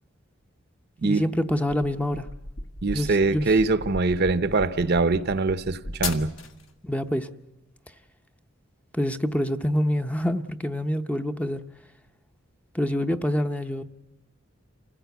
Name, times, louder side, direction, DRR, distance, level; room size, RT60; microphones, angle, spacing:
voice 1, 1.0-2.3 2.9-3.6 6.8-7.3 8.9-11.6 12.7-13.8, left 1 dB, 5° left, 0.7 m, -26 dB
sound 1, 1.5-6.7, left 3 dB, 70° left, 1.5 m, -36 dB
voice 2, 2.8-6.3, right 3 dB, 55° right, 0.8 m, -23 dB
27.0 x 16.5 x 8.2 m
head